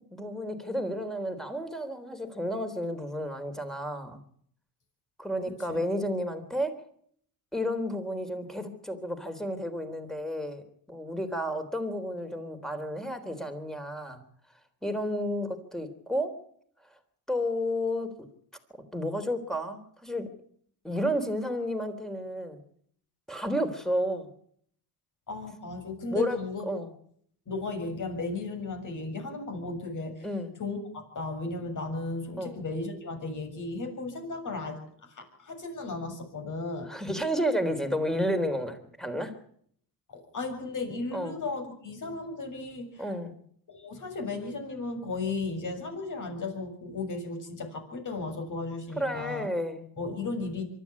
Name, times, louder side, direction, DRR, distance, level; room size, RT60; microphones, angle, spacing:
voice 1, 0.1-4.2 5.2-6.7 7.5-10.6 10.9-14.2 14.8-16.4 17.3-18.3 18.9-20.3 20.8-22.6 23.3-24.3 26.1-26.4 26.7-26.9 30.2-30.6 32.4-32.6 36.9-39.3 41.1-41.4 43.0-43.4 49.0-49.8, equal, ahead, 8 dB, 3.6 m, -31 dB
voice 2, 25.3-26.7 27.5-30.3 30.6-36.9 40.1-43.1 43.7-49.5 50.0-50.6, left 3 dB, 40° left, 6 dB, 7.0 m, -35 dB
24.0 x 12.5 x 8.5 m, 0.64 s
supercardioid pair, 90°, 45 cm